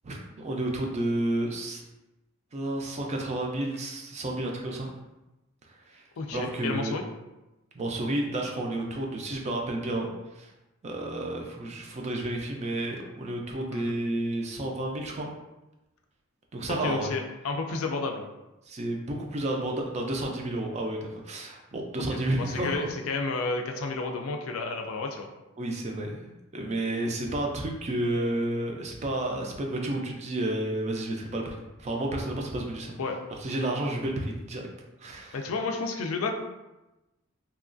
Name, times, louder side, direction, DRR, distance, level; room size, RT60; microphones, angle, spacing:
voice 1, 0.0-1.8 2.5-4.9 5.7-7.0 7.7-10.1 10.3-10.5 10.8-15.3 16.5-17.1 18.7-22.9 25.6-32.9 33.4-34.7 35.0-35.4, right 1 dB, 35° right, 1 dB, 0.4 m, -31 dB
voice 2, 6.2-7.1 13.7-13.9 16.7-18.2 22.1-25.3 33.0-33.2 35.3-36.3, left 3 dB, 80° left, 3 dB, 0.4 m, -31 dB
2.9 x 2.3 x 2.5 m, 1.0 s
head